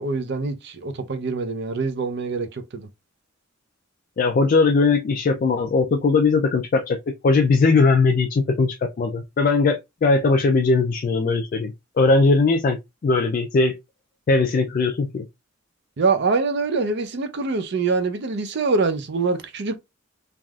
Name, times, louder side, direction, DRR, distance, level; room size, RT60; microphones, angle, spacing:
voice 1, 0.0-2.9 16.0-19.8, right 4 dB, 60° right, 0.5 m, -24 dB
voice 2, 4.2-13.8 14.3-15.3, left 3 dB, 45° left, 0.3 m, -19 dB
3.4 x 2.4 x 2.3 m
head